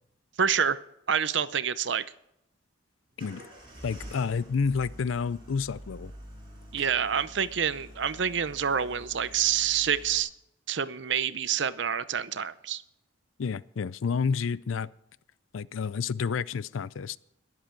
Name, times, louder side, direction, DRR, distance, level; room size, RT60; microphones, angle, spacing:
voice 1, 0.4-0.8 1.1-2.0 6.7-10.3 10.7-12.8, right 8 dB, 65° right, 15 dB, 0.7 m, -27 dB
sound 1, 3.2-10.2, equal, 25° right, 6.2 m, -47 dB
voice 2, 3.8-6.1 13.4-14.9 15.5-17.2, left 5 dB, 90° left, 19 dB, 0.5 m, -30 dB
21.5 x 7.7 x 4.6 m, 0.80 s
head